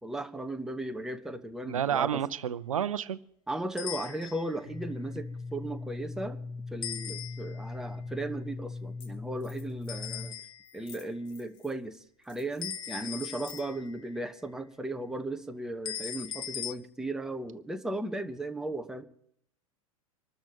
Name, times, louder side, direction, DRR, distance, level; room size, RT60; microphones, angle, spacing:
voice 1, 0.0-2.2 3.5-6.4 6.7-10.3 10.7-19.0, right 1 dB, 5° right, 7 dB, 0.9 m, -36 dB
voice 2, 1.7-3.2, right 9 dB, 65° right, 16 dB, 0.7 m, -30 dB
sound 1, 3.8-4.6 6.8-7.7 9.9-10.8 12.6-14.0 15.8-16.7, left 9 dB, 25° left, 1.2 m, -39 dB
sound 2, 4.6-10.3, left 3 dB, 65° left, 2.3 m, -39 dB
sound 3, 7.9-8.0 8.7-8.8 9.0-9.1 9.4-10.1 10.6-11.8 12.2-13.9, left 6 dB, 50° left, 3.4 m, -54 dB
25.5 x 13.0 x 2.9 m, 0.69 s
figure-of-eight pair, 95°, 19 cm